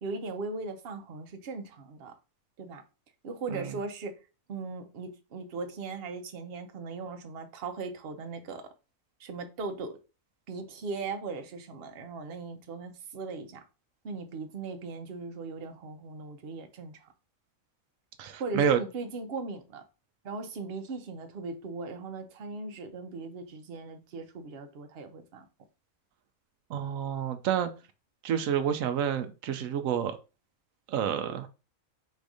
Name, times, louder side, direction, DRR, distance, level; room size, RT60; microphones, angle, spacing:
voice 1, 0.0-2.2 2.6-2.8 3.2-4.2 4.5-8.7 9.2-10.0 10.5-13.6 14.0-17.1 18.4-19.9 20.2-25.5, right 3 dB, 50° right, 0.9 m, -38 dB
voice 2, 18.2-18.8 26.7-27.7 28.2-30.2 30.9-31.5, right 8 dB, 80° right, 1.0 m, -29 dB
4.3 x 2.6 x 4.7 m
omnidirectional pair, 1.4 m